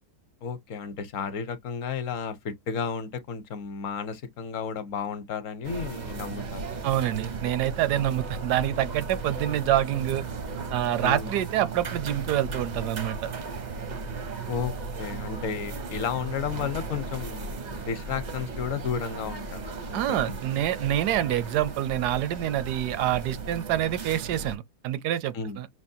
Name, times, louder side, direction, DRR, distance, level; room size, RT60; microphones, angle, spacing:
voice 1, 0.4-6.8 11.0-11.3 14.5-14.7 15.0-19.6 19.9-20.3 25.3-25.6, left 6 dB, 60° left, 1.1 m, -33 dB
sound 1, 5.6-24.6, right 4 dB, 50° right, 0.5 m, -36 dB
voice 2, 6.8-10.2 10.7-13.3 19.9-25.7, right 12 dB, 85° right, 1.2 m, -26 dB
5.9 x 2.1 x 2.6 m
omnidirectional pair, 1.7 m